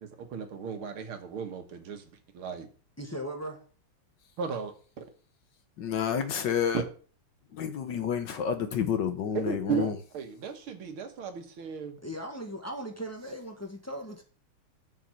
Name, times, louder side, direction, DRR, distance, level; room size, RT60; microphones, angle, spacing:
voice 1, 0.2-2.0 2.3-2.7 4.4-5.0 9.3-12.0, right 6 dB, 75° right, 2.3 m, -35 dB
voice 2, 3.0-3.6 12.0-14.2, equal, 10° left, 1.4 m, -38 dB
voice 3, 5.8-6.8 7.5-10.0, left 7 dB, 65° left, 1.5 m, -29 dB
7.3 x 6.4 x 7.6 m
omnidirectional pair, 2.3 m